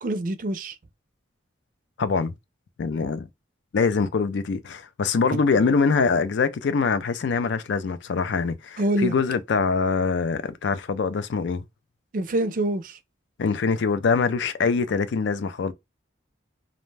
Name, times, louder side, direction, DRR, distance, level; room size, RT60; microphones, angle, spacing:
voice 1, 0.0-0.7 5.6-5.7 8.8-9.1 12.1-13.0, right 1 dB, 45° right, 0.4 m, -25 dB
voice 2, 2.0-2.3 2.8-3.3 3.7-11.6 13.4-15.7, left 5 dB, 70° left, 0.4 m, -24 dB
2.5 x 2.1 x 3.2 m
head